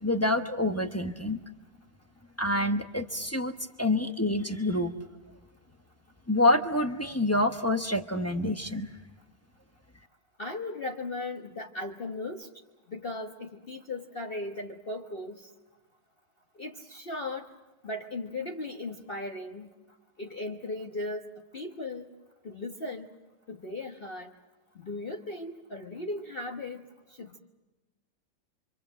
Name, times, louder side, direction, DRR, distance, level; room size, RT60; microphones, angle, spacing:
voice 1, 0.0-1.4 2.4-3.5 3.8-4.9 6.3-8.9, left 1 dB, 15° left, 6 dB, 0.6 m, -27 dB
voice 2, 10.4-12.5 12.9-15.5 16.5-17.5 17.8-19.7 20.2-22.1 22.4-23.1 23.5-24.3 24.7-27.4, left 2 dB, 35° left, 2 dB, 1.2 m, -37 dB
26.5 x 25.5 x 7.6 m, 1.1 s
omnidirectional pair, 1.9 m